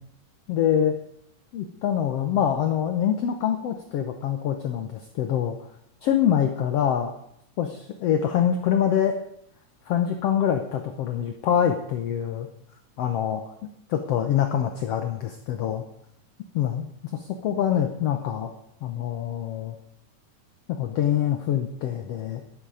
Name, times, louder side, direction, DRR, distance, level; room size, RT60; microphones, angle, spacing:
voice 1, 0.5-1.0 1.5-5.6 6.0-7.1 7.6-9.2 9.9-12.5 13.0-13.4 13.9-15.8 16.6-18.5 18.8-19.8 20.7-22.4, left 9 dB, 65° left, 6 dB, 1.7 m, -25 dB
12.5 x 12.0 x 5.0 m, 0.74 s
omnidirectional pair, 3.6 m